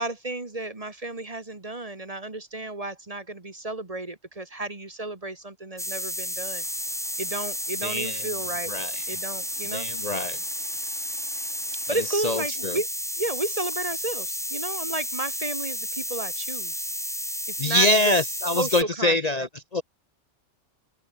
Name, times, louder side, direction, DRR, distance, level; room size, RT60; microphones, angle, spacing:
voice 1, 0.0-6.6 7.2-8.7 9.1-9.9 11.9-12.9 13.2-16.9 17.5-18.1 18.5-19.5, right 2 dB, 30° right, 1.7 m, -32 dB
sound 1, 5.8-18.8, equal, ahead, 1.4 m, -32 dB
sound 2, 6.6-12.5, right 2 dB, 70° right, 6.0 m, -55 dB
voice 2, 7.8-8.3 8.7-9.2 9.7-10.4 12.1-12.8 17.6-19.8, left 1 dB, 35° left, 0.9 m, -25 dB
open air
omnidirectional pair, 1.3 m